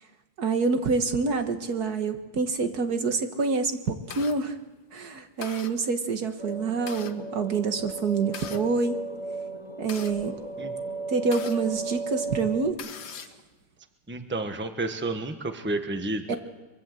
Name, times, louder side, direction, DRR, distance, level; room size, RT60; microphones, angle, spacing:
voice 1, 0.4-4.6 4.9-9.0 9.8-10.4 11.1-13.3 16.3-16.4, right 4 dB, 65° right, 7 dB, 2.0 m, -27 dB
sound 1, 3.4-4.4 4.9-5.1 5.4-5.7 6.5-7.2 8.0-8.6 9.4-11.6 12.1-12.2 12.5-13.4, left 7 dB, 75° left, 1.7 m, -41 dB
sound 2, 6.4-12.7, right 3 dB, 50° left, 2.3 m, -35 dB
voice 2, 14.1-16.3, right 2 dB, 5° right, 7 dB, 1.2 m, -31 dB
23.5 x 23.5 x 7.8 m, 1.2 s
omnidirectional pair, 1.8 m